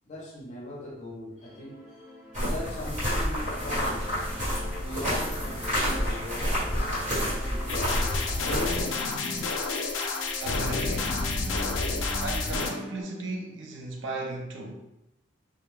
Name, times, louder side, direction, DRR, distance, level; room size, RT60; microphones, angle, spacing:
voice 1, 0.0-2.0 2.4-4.1 4.7-9.1 9.9-10.1 11.4-11.6, left 1 dB, 35° left, -4 dB, 0.7 m, -40 dB
sound 1, 1.4-13.0, left 1 dB, ahead, 0.5 m, -43 dB
sound 2, 2.3-8.8, equal, 40° right, 1.4 m, -29 dB
sound 3, 7.7-12.7, left 3 dB, 70° left, 0.4 m, -29 dB
voice 2, 10.4-11.3 12.2-14.9, right 2 dB, 65° right, 1 dB, 0.4 m, -36 dB
2.3 x 2.0 x 3.1 m, 0.87 s
head